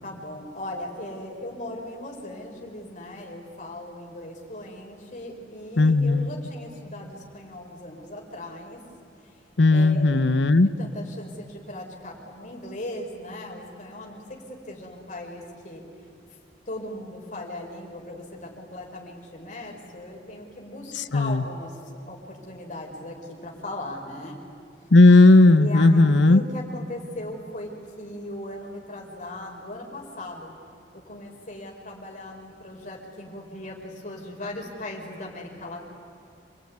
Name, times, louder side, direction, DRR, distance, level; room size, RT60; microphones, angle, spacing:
voice 1, 0.0-8.8 9.2-9.3 9.7-10.2 10.8-14.2 14.5-15.8 16.7-24.4 25.5-30.5 30.9-35.8, left 1 dB, 45° left, 0 dB, 5.0 m, -38 dB
voice 2, 5.8-6.3 9.6-10.7 21.1-21.4 24.9-26.4, left 2 dB, 90° left, 13 dB, 0.9 m, -15 dB
27.5 x 22.0 x 9.6 m, 2.7 s
head